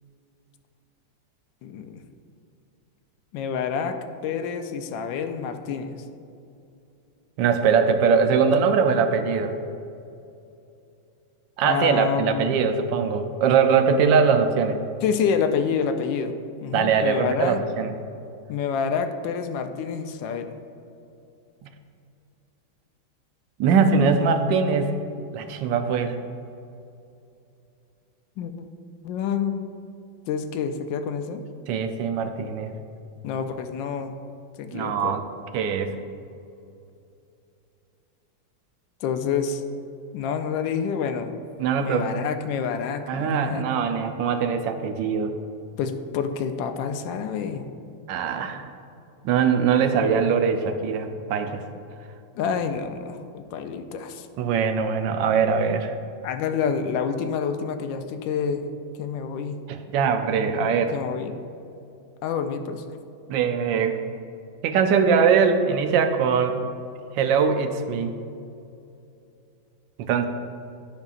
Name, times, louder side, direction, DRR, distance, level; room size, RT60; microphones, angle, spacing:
voice 1, 1.6-2.0 3.3-4.0 4.2-6.0 11.6-12.4 15.0-17.6 18.5-20.5 28.4-28.5 29.0-29.6 30.3-31.4 33.2-34.2 34.6-35.1 39.0-39.6 40.1-41.3 41.8-43.6 45.8-47.6 52.4-54.3 56.2-58.6 59.0-59.6 60.5-61.3 62.2-62.8, left 6 dB, 80° left, 7 dB, 1.2 m, -28 dB
voice 2, 7.4-9.6 11.6-14.8 16.7-17.9 21.6-21.7 23.6-25.0 25.3-26.2 31.7-32.7 34.7-35.2 35.5-35.9 41.6-42.1 43.1-45.4 48.1-48.7 49.2-51.6 54.4-55.9 59.7-60.9 63.3-64.0 64.6-66.6 67.1-68.2 70.0-70.3, right 6 dB, 75° right, 7 dB, 1.3 m, -22 dB
11.5 x 5.3 x 2.4 m, 2.6 s
omnidirectional pair, 2.1 m